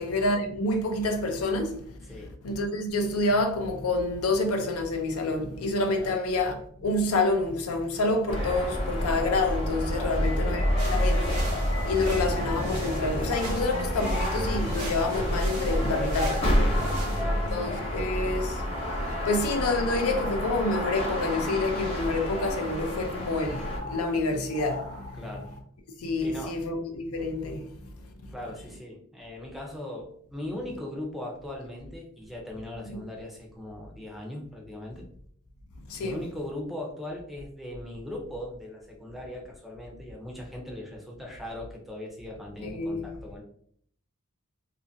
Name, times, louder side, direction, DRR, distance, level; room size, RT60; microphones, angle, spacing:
voice 1, 0.0-1.9 2.4-16.7 17.5-25.2 26.0-27.7 32.9-33.0 35.9-36.2 42.6-43.1, left 2 dB, 75° left, 0.5 m, -28 dB
sound 1, 8.3-23.8, equal, 30° left, 0.8 m, -28 dB
voice 2, 9.9-10.2 16.7-17.9 25.1-25.5 26.2-26.5 28.3-35.0 36.0-43.4, left 1 dB, ahead, 0.5 m, -39 dB
sound 2, 10.8-17.2, right 2 dB, 90° right, 0.8 m, -41 dB
sound 3, 19.2-21.8 22.1-25.6, left 1 dB, 50° right, 0.5 m, -43 dB
2.6 x 2.5 x 2.6 m
head